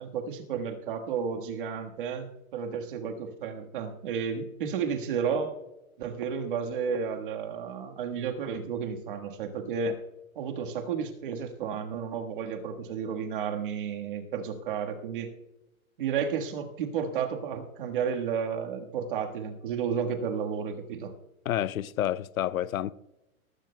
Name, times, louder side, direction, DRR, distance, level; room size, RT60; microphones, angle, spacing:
voice 1, 0.0-5.5 6.0-10.0 10.3-15.3 16.0-21.1, right 6 dB, 35° right, 1.5 m, -32 dB
voice 2, 21.4-22.9, left 11 dB, 70° left, 0.6 m, -29 dB
19.5 x 15.0 x 2.2 m
hypercardioid pair, 175°, 43 cm